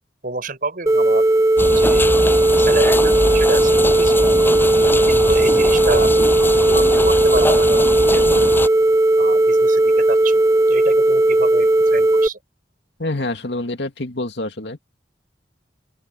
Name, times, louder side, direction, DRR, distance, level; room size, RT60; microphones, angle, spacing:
voice 1, 0.2-1.3 1.6-2.2 2.6-4.3 4.7-6.1 6.5-8.5 9.2-10.4 10.7-12.4, right 3 dB, 55° right, 6.4 m, -28 dB
sound 1, 0.9-12.3, right 2 dB, 20° right, 0.5 m, -16 dB
sound 2, 1.6-8.7, left 1 dB, 15° left, 7.0 m, -23 dB
voice 2, 13.0-14.8, left 2 dB, 75° left, 2.4 m, -26 dB
open air
head